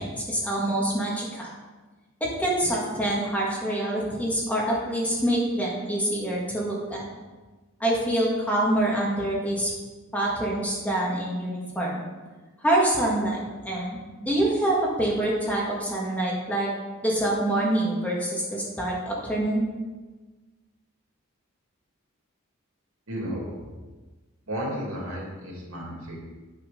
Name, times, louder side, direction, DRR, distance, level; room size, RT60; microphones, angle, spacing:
voice 1, 0.0-1.5 2.2-7.0 7.8-9.7 10.1-12.0 12.6-16.7 17.0-19.7, right 1 dB, 5° left, -4 dB, 1.9 m, -26 dB
voice 2, 23.1-23.4 24.5-26.2, equal, 90° right, -2 dB, 2.7 m, -33 dB
8.7 x 6.6 x 5.2 m, 1.3 s
head